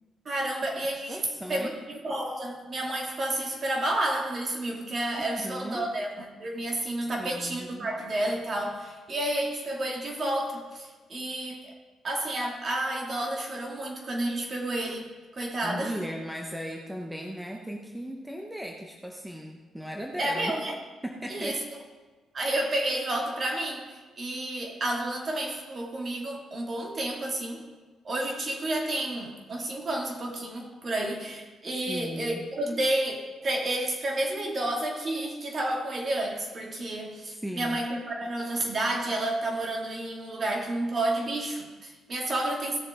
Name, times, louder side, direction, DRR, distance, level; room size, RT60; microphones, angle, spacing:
voice 1, 0.2-11.7 12.0-15.9 20.2-20.7 21.3-21.8 22.3-27.6 28.0-42.8, right 1 dB, 40° right, 0 dB, 2.5 m, -30 dB
voice 2, 1.1-1.7 5.2-5.9 7.2-7.9 15.6-20.6 21.0-21.6 31.9-32.4 37.4-37.8, equal, 5° right, 1 dB, 1.0 m, -37 dB
16.5 x 6.9 x 3.8 m, 1.3 s
cardioid pair, 90°, 0 cm